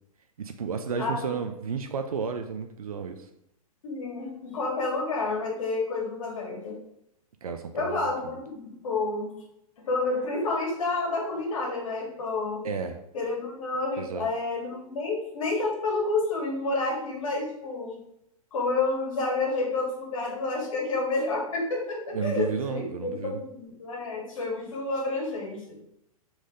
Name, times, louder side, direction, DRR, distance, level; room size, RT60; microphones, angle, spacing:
voice 1, 0.4-3.3 7.4-8.3 12.6-13.0 14.0-14.3 22.1-23.4, right 6 dB, 70° right, 6 dB, 0.8 m, -32 dB
voice 2, 1.0-1.3 3.8-6.8 7.7-9.3 9.9-12.6 13.1-18.0 18.5-25.8, left 3 dB, 60° left, -1 dB, 3.3 m, -29 dB
6.5 x 4.9 x 5.4 m, 0.79 s
figure-of-eight pair, 110°, 19 cm